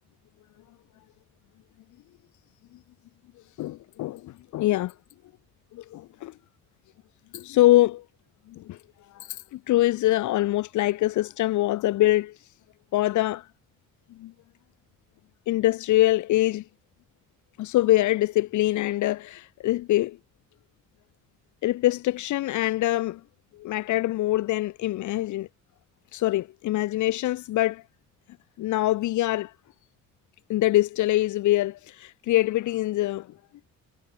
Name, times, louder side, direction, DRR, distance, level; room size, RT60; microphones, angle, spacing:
voice 1, 3.6-4.9 5.7-6.3 7.3-8.0 8.5-8.8 9.1-12.4 12.9-13.5 14.2-14.3 15.5-16.6 17.6-20.2 21.6-23.2 23.5-25.5 26.1-27.8 28.6-29.5 30.5-33.3, left 16 dB, 75° left, 0.7 m, -24 dB
cardioid pair, 90°, 30 cm